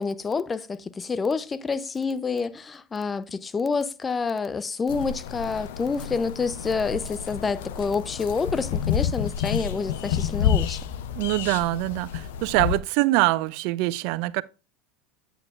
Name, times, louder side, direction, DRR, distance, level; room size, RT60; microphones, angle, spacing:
voice 1, 0.0-10.8, left 5 dB, 25° left, 0.5 m, -28 dB
sound 1, 4.9-12.8, left 8 dB, 75° left, 0.5 m, -29 dB
voice 2, 11.2-14.4, right 19 dB, 65° right, 0.3 m, -24 dB
8.5 x 6.9 x 2.4 m
hypercardioid pair, 90°, 0 cm